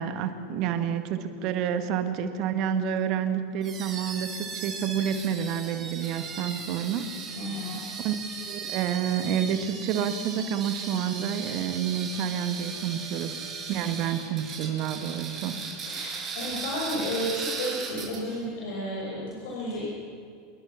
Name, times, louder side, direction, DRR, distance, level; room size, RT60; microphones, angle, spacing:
voice 1, 0.0-7.1 8.0-8.2 8.5-13.4 13.7-15.6, right 8 dB, 45° right, 9 dB, 2.0 m, -29 dB
sound 1, 3.6-18.4, right 5 dB, 30° right, 6.0 m, -37 dB
voice 2, 7.4-7.8 15.8-19.8, equal, 60° left, -5 dB, 6.0 m, -32 dB
26.5 x 21.5 x 5.9 m, 2.5 s
figure-of-eight pair, 80°, 0 cm